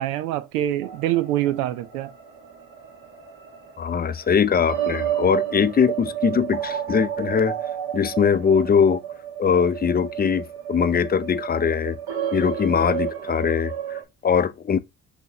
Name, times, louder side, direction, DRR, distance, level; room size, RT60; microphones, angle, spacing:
voice 1, 0.0-2.1, right 13 dB, 85° right, 0.7 m, -25 dB
sound 1, 0.8-14.0, right 10 dB, 55° right, 1.6 m, -32 dB
voice 2, 3.8-7.5 7.9-9.0 9.4-12.0 12.3-14.8, left 7 dB, 20° left, 0.5 m, -21 dB
6.0 x 2.8 x 2.8 m
hypercardioid pair, 50°, 44 cm